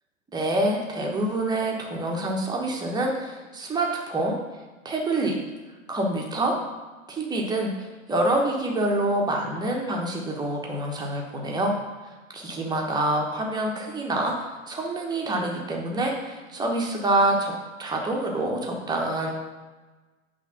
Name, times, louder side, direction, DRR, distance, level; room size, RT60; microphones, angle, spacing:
voice 1, 0.3-4.4 4.8-5.4 5.9-6.6 7.1-11.7 12.0-17.5 17.8-19.3, right 1 dB, 10° right, 0 dB, 1.0 m, -26 dB
8.2 x 3.3 x 5.7 m, 1.3 s
figure-of-eight pair, 110°, 43 cm